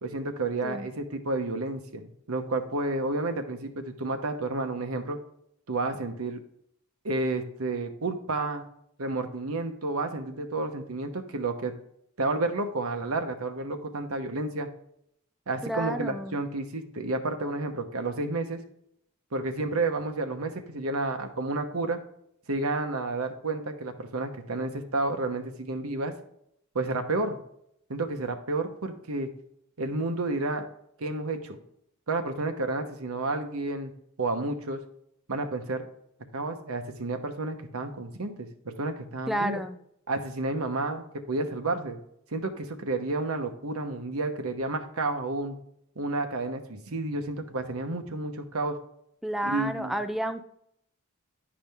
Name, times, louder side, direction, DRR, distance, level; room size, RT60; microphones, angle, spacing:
voice 1, 0.0-5.2 5.7-6.4 7.0-8.7 9.0-11.7 12.2-14.7 15.5-18.6 19.3-22.0 22.5-26.1 26.7-27.4 27.9-29.3 29.8-30.6 31.0-31.6 32.1-33.9 34.2-34.8 35.3-35.9 36.3-39.6 40.1-42.0 42.3-45.6 46.0-48.8 49.4-49.9, right 2 dB, 80° right, 6 dB, 1.0 m, -31 dB
voice 2, 15.6-16.4 39.3-39.8 49.2-50.4, right 1 dB, ahead, 7 dB, 0.3 m, -31 dB
10.0 x 5.0 x 3.5 m, 0.73 s
head